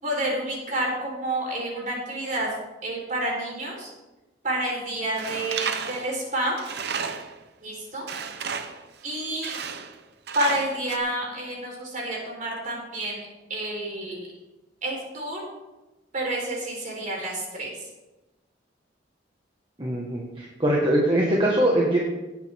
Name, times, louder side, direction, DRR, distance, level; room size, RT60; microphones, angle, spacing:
voice 1, 0.0-2.5 2.8-3.9 4.4-6.6 7.6-8.1 9.0-9.6 10.3-14.3 14.8-15.4 16.1-17.9, right 1 dB, 45° right, -1 dB, 4.2 m, -29 dB
Tools, 5.2-7.4 8.1-8.9 9.4-10.0 10.3-11.0, right 6 dB, 60° right, 0.8 m, -32 dB
voice 2, 19.8-22.0, right 1 dB, 25° right, -3 dB, 1.6 m, -22 dB
18.0 x 8.3 x 3.7 m, 1.1 s
head